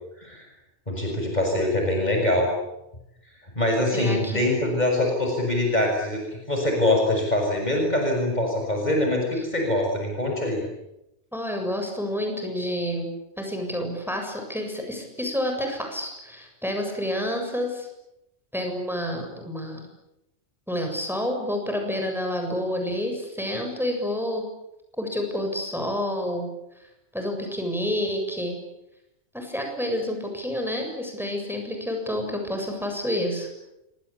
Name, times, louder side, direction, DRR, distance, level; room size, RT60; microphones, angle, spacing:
voice 1, 0.9-2.5 3.5-6.2 6.5-10.6, left 1 dB, 40° left, 1 dB, 6.8 m, -23 dB
voice 2, 3.9-4.4 11.3-13.1 13.4-17.9 18.5-19.9 20.7-24.4 25.0-26.5 27.1-28.6 29.3-33.6, equal, ahead, 3 dB, 7.5 m, -29 dB
27.5 x 25.0 x 8.6 m, 0.89 s
omnidirectional pair, 1.1 m